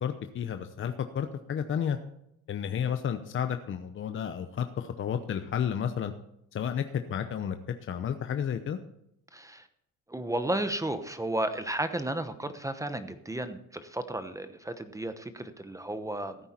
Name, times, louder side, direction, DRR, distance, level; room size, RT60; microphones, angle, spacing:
voice 1, 0.0-2.0 2.5-6.1 6.5-7.6 7.9-8.8, left 8 dB, 40° left, 8 dB, 0.8 m, -31 dB
voice 2, 9.3-9.7 10.1-16.4, right 1 dB, 10° right, 10 dB, 0.9 m, -33 dB
15.0 x 8.9 x 4.4 m, 0.79 s
cardioid pair, 115°, 32 cm